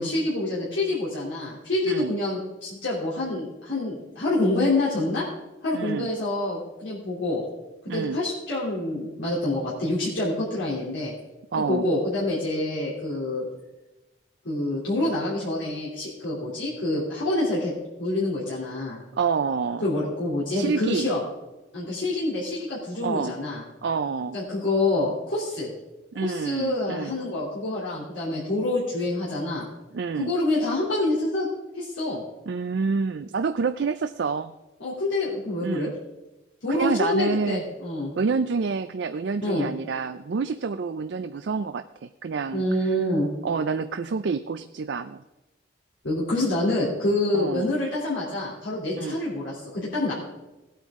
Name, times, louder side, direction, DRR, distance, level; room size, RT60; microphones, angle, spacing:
voice 1, 0.0-5.3 5.6-7.4 7.9-11.1 11.7-13.5 14.4-17.7 18.0-19.0 19.8-21.2 21.7-23.6 24.3-25.7 26.2-29.7 30.1-31.5 31.7-32.2 34.8-35.9 36.6-38.1 39.4-39.6 42.5-43.3 46.0-50.1, left 2 dB, 85° left, -7 dB, 3.0 m, -26 dB
voice 2, 5.7-6.1 7.9-8.2 11.5-11.9 19.2-19.8 20.5-21.1 23.0-23.3 23.8-24.4 26.1-27.1 29.9-30.3 32.5-34.5 35.6-35.9 36.7-37.6 38.2-43.0 43.4-45.2 47.3-47.7 49.0-49.2, right 5 dB, 65° right, 10 dB, 0.4 m, -28 dB
17.5 x 8.9 x 3.6 m, 1.1 s
head